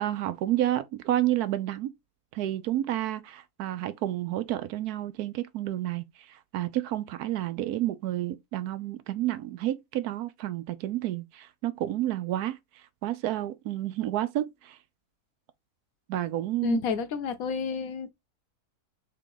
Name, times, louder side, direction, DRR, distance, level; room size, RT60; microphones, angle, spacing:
voice 1, 0.0-1.9 2.3-12.6 13.0-14.8 16.1-16.8, right 13 dB, 80° right, 1.1 m, -30 dB
voice 2, 16.6-18.1, left 6 dB, 70° left, 1.2 m, -30 dB
3.7 x 3.5 x 3.8 m
omnidirectional pair, 1.6 m